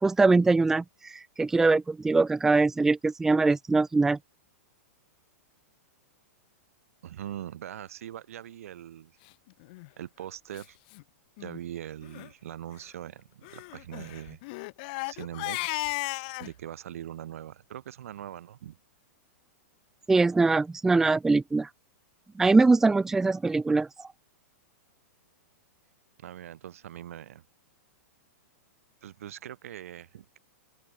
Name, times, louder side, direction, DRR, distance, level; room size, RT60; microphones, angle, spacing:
voice 1, 0.0-4.2 20.1-21.7 22.4-24.1, right 3 dB, 5° right, 0.8 m, -22 dB
voice 2, 7.0-9.1 10.0-10.8 11.4-14.4 15.1-15.8 16.4-18.8 26.2-27.4 29.0-30.4, right 11 dB, 65° right, 6.6 m, -41 dB
Crying sobbing, 9.6-9.9 10.5-10.6 10.9-11.0 11.4-11.6 12.0-12.3 13.4-16.5, left 25 dB, 35° left, 0.8 m, -35 dB
open air
supercardioid pair, 170°, 8 cm